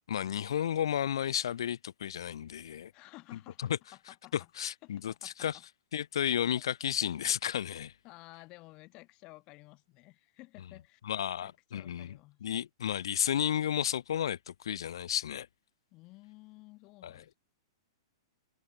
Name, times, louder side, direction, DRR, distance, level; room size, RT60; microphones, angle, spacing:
voice 1, 0.1-2.9 3.6-3.7 4.3-5.6 5.9-7.9 11.0-15.5 17.0-17.2, left 9 dB, 75° left, 1.8 m, -32 dB
voice 2, 2.9-4.5 4.8-5.6 5.9-6.0 6.3-6.6 7.0-7.3 8.0-12.5 15.9-17.4, left 22 dB, 35° left, 6.3 m, -54 dB
hypercardioid pair, 150°, 3 cm